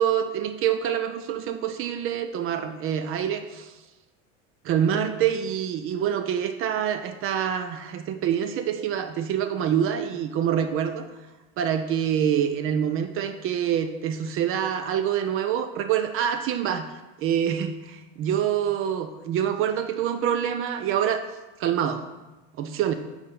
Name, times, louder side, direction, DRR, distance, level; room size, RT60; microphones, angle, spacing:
voice 1, 0.0-3.8 4.6-11.1 11.6-16.9 17.2-21.2 21.6-22.1 22.6-22.9, right 9 dB, 35° right, 8 dB, 0.4 m, -26 dB
6.2 x 4.1 x 3.7 m, 1.1 s
hypercardioid pair, 105°, 37 cm